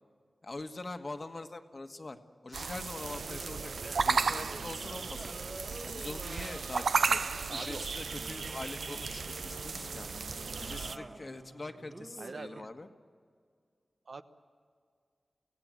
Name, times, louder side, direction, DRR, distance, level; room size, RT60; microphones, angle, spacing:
voice 1, 0.4-3.7 4.0-5.4 5.8-10.1 10.6-12.9, left 2 dB, 45° left, 6 dB, 1.5 m, -43 dB
sound 1, 2.5-11.0, right 5 dB, 80° right, 0.6 m, -34 dB
sound 2, 3.0-12.6, right 2 dB, 35° right, 1.6 m, -48 dB
voice 2, 7.5-7.9 12.2-12.7 14.1-14.2, right 3 dB, 65° right, 8 dB, 1.1 m, -43 dB
25.0 x 16.5 x 7.7 m, 2.1 s
cardioid pair, 55°, 0 cm